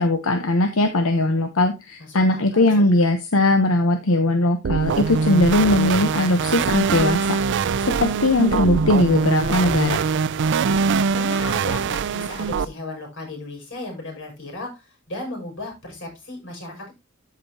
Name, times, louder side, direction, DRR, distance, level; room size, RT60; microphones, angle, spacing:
voice 1, 0.0-7.6 8.0-10.1, left 2 dB, 85° left, 6 dB, 1.0 m, -20 dB
voice 2, 2.0-3.0 7.8-7.9 8.3-8.5 11.1-16.9, left 2 dB, 60° left, 2 dB, 5.8 m, -35 dB
sound 1, 4.6-12.7, right 5 dB, 60° right, 0.4 m, -23 dB
13.5 x 5.1 x 2.9 m, 0.23 s
head